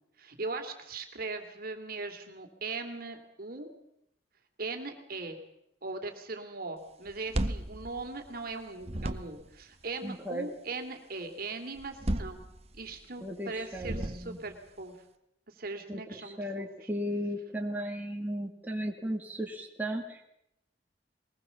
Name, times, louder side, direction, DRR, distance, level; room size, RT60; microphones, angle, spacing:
voice 1, 0.2-3.7 4.6-5.4 5.8-12.4 12.8-15.0 15.5-16.9, right 3 dB, 55° right, 5 dB, 2.7 m, -39 dB
sound 1, 7.1-8.5 8.8-9.6 11.8-13.0 13.7-14.5, right 1 dB, 35° right, 1.1 m, -34 dB
voice 2, 10.0-10.5 13.2-14.4 15.9-20.3, equal, 10° right, 0 dB, 2.0 m, -36 dB
21.5 x 19.5 x 7.0 m, 0.79 s
head